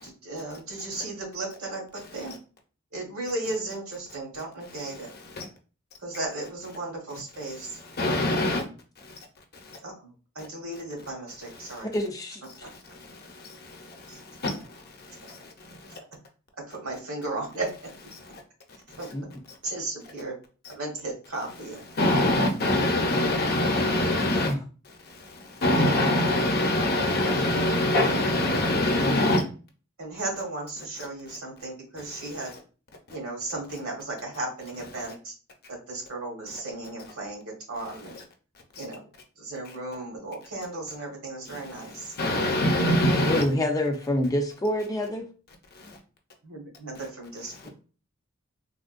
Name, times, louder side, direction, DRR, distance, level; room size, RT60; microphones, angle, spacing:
voice 1, 0.0-2.3 2.9-5.1 6.0-7.8 9.8-11.9 14.1-14.2 16.7-17.7 19.0-19.1 19.6-20.3 20.7-21.8 30.0-32.5 33.1-35.3 35.7-37.4 37.7-38.2 38.8-39.0 39.4-42.1 46.4-47.7, right 2 dB, 70° right, -1 dB, 1.4 m, -35 dB
voice 2, 8.0-8.6 9.0-9.2 9.6-9.8 13.1-15.5 15.9-16.0 22.0-24.5 25.2-29.4 38.8-38.9 42.1-43.4 45.8-46.0, left 1 dB, 45° left, 3 dB, 0.7 m, -24 dB
voice 3, 11.8-12.4 19.1-19.3 24.3-24.6 43.2-45.3, left 1 dB, 15° left, 3 dB, 0.4 m, -27 dB
3.5 x 2.2 x 2.5 m, 0.36 s
head